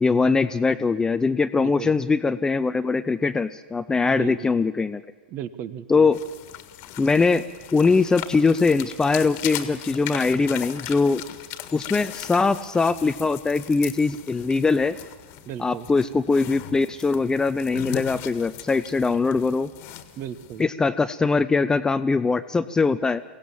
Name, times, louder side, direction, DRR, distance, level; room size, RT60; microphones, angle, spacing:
voice 1, 0.0-5.0 5.9-6.2 7.0-7.4 7.7-11.2 11.7-15.0 15.6-19.7 20.6-23.2, left 4 dB, 10° left, 12 dB, 0.6 m, -22 dB
voice 2, 1.5-1.9 4.1-4.5 5.3-6.1 15.5-15.9 20.2-20.6, right 9 dB, 35° right, 15 dB, 1.2 m, -35 dB
sound 1, 6.1-20.6, left 13 dB, 40° left, 1.7 m, -38 dB
23.5 x 17.0 x 7.3 m, 1.3 s
hypercardioid pair, 105°, 6 cm